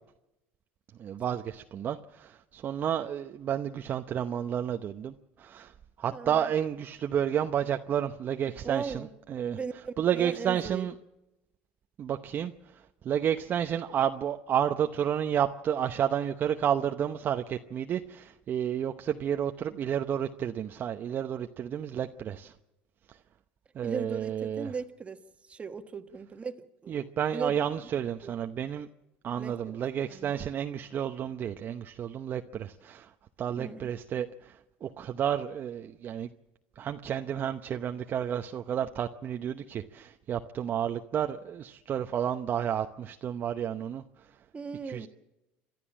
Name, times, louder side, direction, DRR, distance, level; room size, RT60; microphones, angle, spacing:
voice 1, 1.0-5.7 6.0-9.6 10.0-10.9 12.0-22.5 23.7-24.7 26.9-28.9 29.2-33.1 33.4-36.3 36.8-44.0 44.9-45.1, right 9 dB, 40° right, 6 dB, 0.8 m, -31 dB
voice 2, 6.1-6.5 8.6-9.1 9.4-10.9 23.8-27.9 28.2-28.3 29.4-30.3 33.6-34.0 44.5-45.1, right 5 dB, 25° right, 8 dB, 1.5 m, -38 dB
28.5 x 12.5 x 7.4 m, 0.96 s
supercardioid pair, 95°, 5 cm